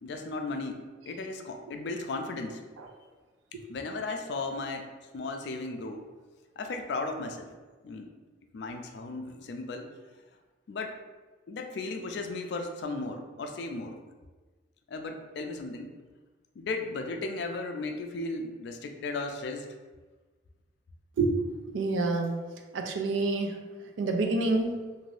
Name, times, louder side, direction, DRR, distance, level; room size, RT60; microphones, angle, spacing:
voice 1, 0.0-2.6 3.7-6.1 6.6-7.5 7.8-8.1 8.5-9.9 10.7-11.0 11.5-14.0 14.9-15.9 16.6-19.7, left 3 dB, 65° left, 5 dB, 0.3 m, -35 dB
voice 2, 21.7-22.4 22.7-23.6 24.0-24.8, right 3 dB, 85° right, 3 dB, 0.4 m, -27 dB
2.6 x 2.5 x 3.2 m, 1.3 s
head